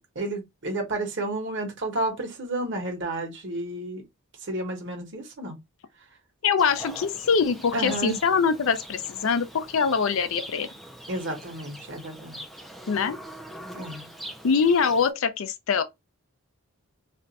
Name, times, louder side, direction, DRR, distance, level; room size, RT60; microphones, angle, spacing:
voice 1, 0.1-4.0 4.5-5.6 7.7-8.2 11.1-12.4 13.7-14.1, right 1 dB, 55° right, 1.0 m, -31 dB
voice 2, 6.4-10.7 12.9-13.2 14.4-15.8, left 5 dB, 65° left, 0.4 m, -23 dB
Livestock farm animals working animals, 6.6-15.1, equal, ahead, 0.3 m, -43 dB
2.5 x 2.2 x 4.0 m
head